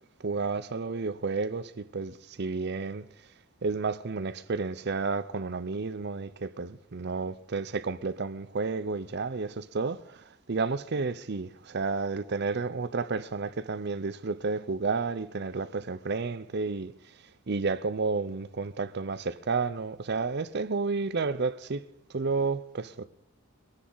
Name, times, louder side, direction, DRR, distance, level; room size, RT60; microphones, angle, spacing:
voice 1, 0.2-3.1 3.6-16.9 17.5-21.8 22.1-23.0, right 4 dB, 50° right, 0.6 m, -31 dB
24.0 x 9.8 x 4.0 m
head